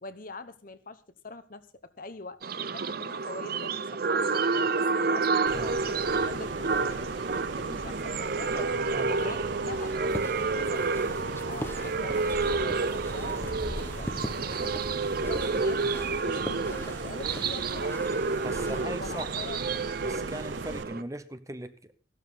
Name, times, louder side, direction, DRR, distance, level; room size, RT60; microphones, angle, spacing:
voice 1, 0.0-4.2 4.7-7.1 7.6-10.0 10.5-15.9 16.2-19.6, left 3 dB, 50° left, 1.0 m, -44 dB
sound 1, 2.4-21.0, right 4 dB, 55° right, 0.7 m, -29 dB
sound 2, 5.5-20.8, right 3 dB, 85° right, 0.8 m, -40 dB
voice 2, 8.4-9.9 18.4-19.3 20.0-21.9, right 1 dB, 15° right, 0.8 m, -39 dB
sound 3, 9.8-18.8, equal, 15° left, 1.3 m, -40 dB
15.0 x 12.5 x 3.9 m
head